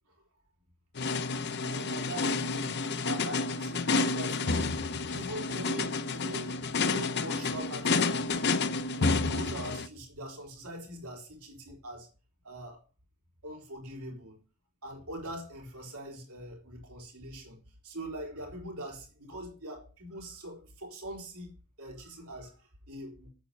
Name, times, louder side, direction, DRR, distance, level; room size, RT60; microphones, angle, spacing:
sound 1, 1.0-9.9, left 3 dB, 50° left, 0.7 m, -30 dB
voice 1, 1.7-2.8 3.0-8.5 8.9-12.1 12.4-12.8 13.4-14.4 14.8-23.3, right 1 dB, 85° right, 4.0 m, -43 dB
8.7 x 7.5 x 5.3 m
head